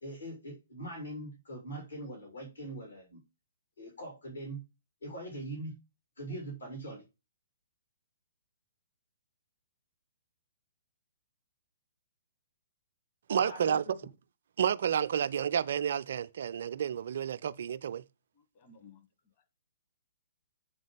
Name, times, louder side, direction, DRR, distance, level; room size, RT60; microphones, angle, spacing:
voice 1, 0.0-3.2 3.8-4.6 5.0-5.7 6.2-7.0 13.4-13.9, right 1 dB, 75° left, 2.5 m, -42 dB
voice 2, 13.3-14.0 14.6-18.0, right 8 dB, 55° right, 0.4 m, -30 dB
voice 3, 18.3-19.6, left 4 dB, 35° left, 1.2 m, -59 dB
7.2 x 3.9 x 5.0 m
figure-of-eight pair, 120°, 0 cm